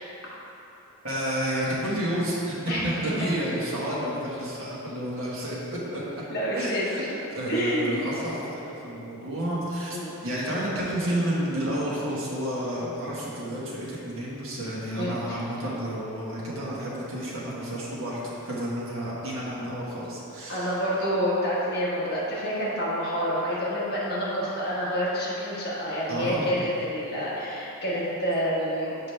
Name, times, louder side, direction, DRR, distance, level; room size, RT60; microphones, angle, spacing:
voice 1, 1.0-2.6 2.8-6.0 6.5-7.0 7.3-10.0 10.2-20.8 26.1-26.5, equal, 70° right, -7 dB, 1.4 m, -30 dB
voice 2, 2.7-3.3 6.3-7.1 7.5-8.1 9.9-10.1 15.0-15.4 20.5-29.0, equal, 45° left, -7 dB, 1.4 m, -28 dB
6.7 x 5.1 x 3.3 m, 2.9 s
head